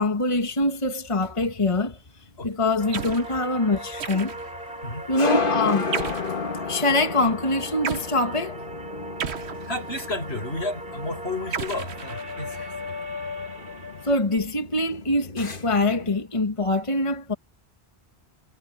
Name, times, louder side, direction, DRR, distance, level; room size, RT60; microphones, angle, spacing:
voice 1, 0.0-2.0 2.4-4.3 5.1-5.9 6.7-8.6 14.0-17.3, left 2 dB, 30° left, 1.6 m, -24 dB
sound 1, 2.2-16.2, left 3 dB, 55° left, 1.9 m, -33 dB
sound 2, 2.8-14.2, equal, 60° right, 3.9 m, -38 dB
sound 3, 2.9-3.3 4.0-4.6 5.9-6.4 7.8-8.1 9.2-10.1 11.5-12.6, right 7 dB, 80° right, 1.3 m, -33 dB
voice 2, 9.7-13.0, left 2 dB, 75° left, 7.3 m, -32 dB
omnidirectional pair, 1.1 m